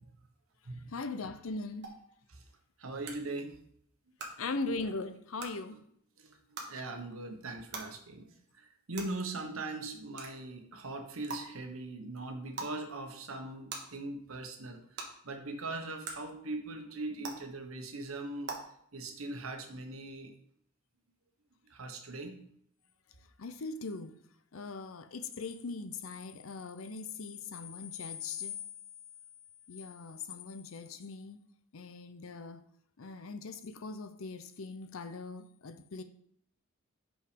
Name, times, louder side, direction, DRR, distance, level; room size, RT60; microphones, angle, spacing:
voice 1, 0.9-1.9 4.4-5.8 23.4-24.1 24.5-28.6 29.7-31.4 31.7-32.6 33.0-36.0, left 3 dB, 85° left, 0.7 m, -40 dB
sound 1, 1.8-1.9 3.0-3.1 4.2-4.3 5.4-5.5 6.5-6.7 7.7-7.8 8.9-9.0 10.2-10.3 11.3-11.4 12.5-12.7 13.7-13.8 15.0-15.1 16.0-16.1 17.2-17.3 18.4-18.5, right 4 dB, 55° right, 1.4 m, -39 dB
voice 2, 2.8-3.6 6.2-8.3 8.6-18.5 18.9-20.3 21.7-22.4, right 2 dB, 90° right, 1.1 m, -40 dB
5.6 x 5.5 x 5.2 m
head